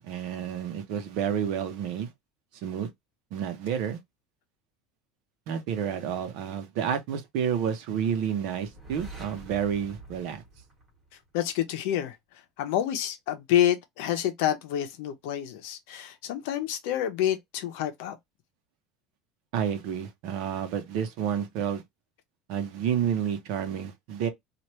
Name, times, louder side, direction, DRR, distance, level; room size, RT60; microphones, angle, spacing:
voice 1, 0.0-2.1 2.6-2.9 3.3-4.0 5.5-10.4 19.5-21.8 22.5-24.3, right 8 dB, 55° right, 0.8 m, -30 dB
sound 1, 8.6-11.5, right 2 dB, 20° right, 1.4 m, -46 dB
voice 2, 11.3-12.2 12.6-18.2, left 11 dB, 70° left, 0.8 m, -28 dB
3.2 x 2.5 x 3.0 m
cardioid pair, 170°, 0 cm